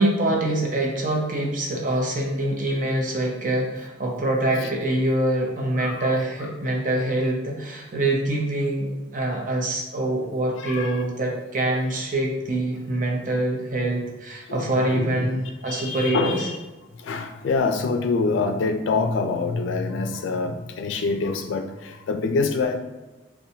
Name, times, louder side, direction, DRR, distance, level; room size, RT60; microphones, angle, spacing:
voice 1, 0.0-16.5, right 1 dB, 45° right, -1 dB, 0.7 m, -25 dB
voice 2, 5.8-6.1 6.4-6.5 10.6-11.0 14.5-15.3 15.7-16.6 16.9-22.8, left 4 dB, 85° left, 6 dB, 0.4 m, -26 dB
4.1 x 2.2 x 2.7 m, 1.1 s
head